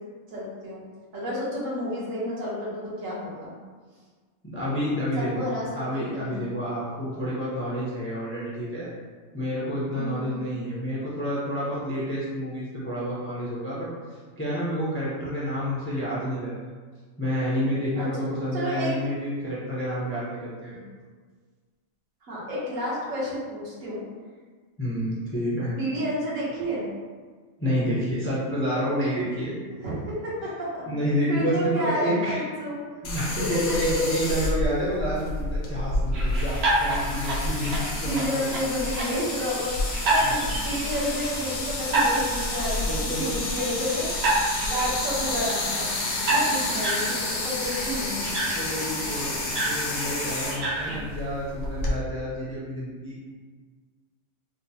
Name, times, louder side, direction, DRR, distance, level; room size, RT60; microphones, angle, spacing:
voice 1, 0.3-0.8 1.1-3.5 5.2-5.6 5.9-6.5 9.9-10.5 18.0-18.1 18.5-18.9 20.7-20.8 22.2-24.0 25.7-26.9 29.7-30.8 31.3-33.0 33.5-33.6 34.0-34.2 34.7-34.8 37.6-39.8 40.0-44.1 44.6-48.6, equal, 70° right, -7 dB, 1.3 m, -31 dB
voice 2, 4.4-5.4 5.7-8.9 9.3-13.9 14.4-16.5 17.2-20.8 24.8-25.7 27.6-29.5 30.9-32.4 33.0-38.6 40.2-40.5 42.9-43.3 48.5-53.3, equal, 20° left, -8 dB, 0.4 m, -29 dB
sound 1, 33.0-52.0, left 2 dB, 65° left, 1.0 m, -30 dB
sound 2, 36.1-51.0, right 2 dB, 55° right, 0.8 m, -30 dB
4.2 x 2.0 x 2.7 m, 1.5 s
omnidirectional pair, 1.4 m